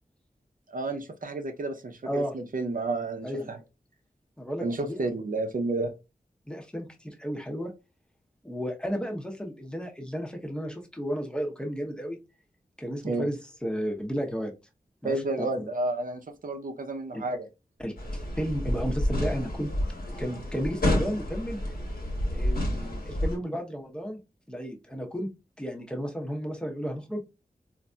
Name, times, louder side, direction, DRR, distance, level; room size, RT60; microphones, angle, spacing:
voice 1, 0.7-3.6 4.6-5.9 13.0-13.3 15.0-17.5, right 2 dB, 60° right, 0.6 m, -31 dB
voice 2, 4.4-5.0 6.5-7.7 8.4-12.2 12.8-14.5 15.0-15.7 17.1-17.2 17.8-19.7 20.2-21.6 22.3-24.2 24.5-25.3 25.6-27.2, equal, 5° left, 0.8 m, -33 dB
sound 1, 18.0-23.4, left 1 dB, 75° left, 1.2 m, -29 dB
3.9 x 2.6 x 2.2 m
wide cardioid pair, 75°, 15 cm